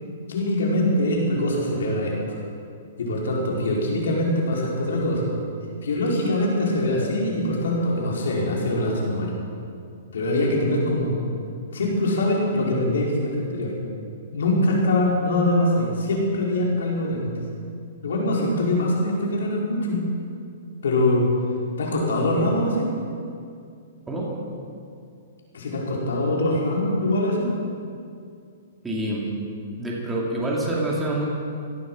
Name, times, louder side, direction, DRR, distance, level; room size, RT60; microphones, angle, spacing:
voice 1, 0.3-2.2 3.0-5.3 5.8-9.3 10.1-11.1 11.7-13.7 14.3-17.2 18.0-20.0 20.8-21.3 21.8-22.9 25.5-27.5, left 1 dB, 85° left, -3 dB, 4.8 m, -23 dB
voice 2, 28.8-29.3 29.8-31.3, right 1 dB, 10° right, -4 dB, 2.6 m, -26 dB
16.5 x 12.0 x 6.3 m, 2.4 s
hypercardioid pair, 155°, 0 cm